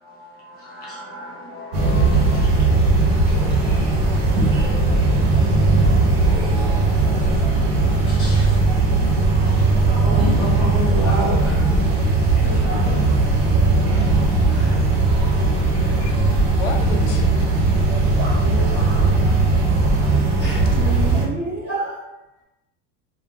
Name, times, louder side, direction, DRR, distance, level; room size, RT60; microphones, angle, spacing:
voice 1, 0.0-6.6 7.5-7.7 8.1-8.6 9.0-9.6 10.2-10.3, left 3 dB, 25° left, -5 dB, 0.9 m, -37 dB
sound 1, 1.7-21.3, right 3 dB, 45° right, 0.6 m, -18 dB
voice 2, 10.0-11.6 12.3-13.2 14.5-14.8 15.3-15.4 18.4-19.0 20.4-22.0, right 1 dB, 5° right, -13 dB, 0.3 m, -29 dB
voice 3, 15.7-16.2 16.5-17.4 18.0-18.4, left 5 dB, 75° left, 4 dB, 0.5 m, -34 dB
2.3 x 2.2 x 3.5 m, 0.98 s
cardioid pair, 170°, 36 cm